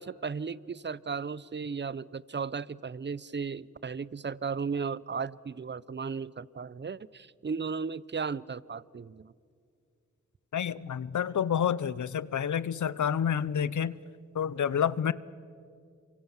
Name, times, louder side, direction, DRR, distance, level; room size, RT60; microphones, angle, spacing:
voice 1, 0.0-9.3, right 5 dB, 40° right, 21 dB, 0.7 m, -35 dB
voice 2, 10.5-14.0 14.3-15.1, left 8 dB, 85° left, 19 dB, 0.7 m, -29 dB
27.5 x 24.0 x 7.3 m, 2.3 s
cardioid pair, 50°, 29 cm